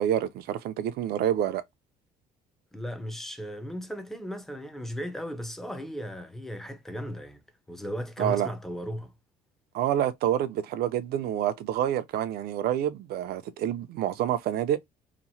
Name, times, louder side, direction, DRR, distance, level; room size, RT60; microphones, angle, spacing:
voice 1, 0.0-1.6 8.2-8.5 9.7-14.8, right 11 dB, 70° right, 0.5 m, -27 dB
voice 2, 2.7-7.4 7.7-9.1, equal, ahead, 0.5 m, -36 dB
2.9 x 2.0 x 2.7 m
cardioid pair, 110°, 17 cm